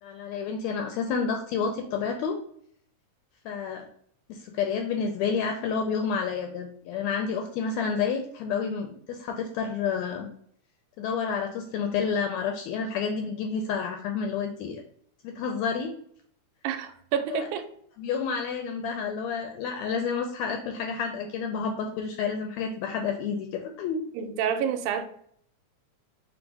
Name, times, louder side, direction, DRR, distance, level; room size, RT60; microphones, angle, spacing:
voice 1, 0.0-2.4 3.4-3.9 4.3-10.3 11.0-14.8 15.2-15.9 17.3-17.5 18.0-24.0, left 6 dB, 80° left, 4 dB, 1.6 m, -29 dB
voice 2, 16.6-17.7 24.1-25.0, right 8 dB, 85° right, 8 dB, 2.0 m, -28 dB
4.9 x 2.1 x 4.5 m, 0.65 s
omnidirectional pair, 3.5 m